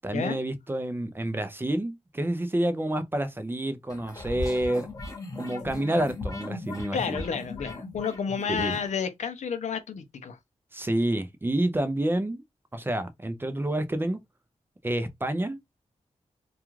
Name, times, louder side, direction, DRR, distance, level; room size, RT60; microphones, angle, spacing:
voice 1, 0.0-4.9 5.4-7.2 8.5-8.8 10.7-12.4 12.7-14.2 14.8-15.6, right 1 dB, 20° right, 0.4 m, -28 dB
sound 1, 3.9-8.8, left 2 dB, 30° left, 0.9 m, -37 dB
voice 2, 6.9-10.4, left 6 dB, 80° left, 0.5 m, -31 dB
2.3 x 2.3 x 3.0 m
wide cardioid pair, 90°, 12 cm